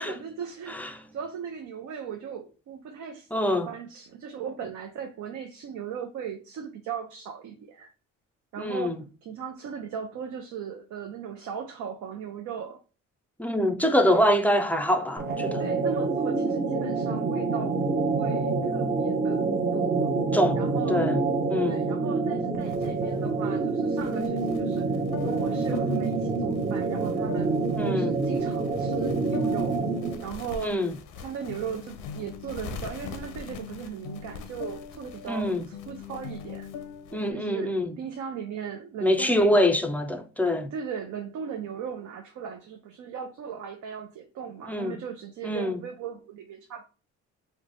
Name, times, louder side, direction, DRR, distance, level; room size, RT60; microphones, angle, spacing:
voice 1, 0.0-7.9 8.5-12.8 14.1-14.3 15.6-20.1 20.6-21.1 21.5-27.5 27.9-29.8 30.2-30.8 31.2-36.7 37.3-39.7 40.7-46.8, right 7 dB, 70° right, 0.6 m, -37 dB
voice 2, 3.3-3.7 8.6-9.0 13.4-15.6 20.3-20.6 20.9-21.2 21.5-21.9 27.8-28.2 30.6-30.9 35.3-35.6 37.1-37.9 39.0-40.7 44.7-45.0 45.4-45.8, left 1 dB, 5° left, 0.4 m, -24 dB
sound 1, 15.2-30.3, right 3 dB, 35° right, 0.7 m, -27 dB
sound 2, 22.6-37.3, left 7 dB, 90° left, 0.6 m, -42 dB
3.2 x 2.1 x 3.8 m
cardioid pair, 90°, 30 cm